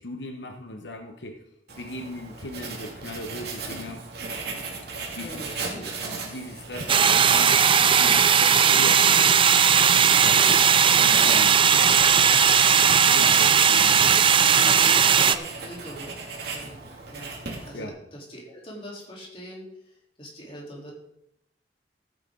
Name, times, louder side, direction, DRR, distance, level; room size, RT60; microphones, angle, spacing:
voice 1, 0.0-1.4 1.8-4.1 4.9-7.7 8.0-9.3 10.2-11.6 12.2-14.0 17.7-17.9, left 1 dB, 80° left, 4 dB, 1.1 m, -38 dB
Writing, 1.7-17.9, right 3 dB, 65° right, 2.6 m, -37 dB
voice 2, 5.2-5.9 8.1-8.3 10.1-10.2 13.6-16.2 16.5-16.8 17.1-17.3 17.7-20.9, equal, 35° left, -4 dB, 3.7 m, -41 dB
sound 1, 6.9-15.3, right 7 dB, 30° right, 0.5 m, -18 dB
14.5 x 9.0 x 3.9 m, 0.80 s
head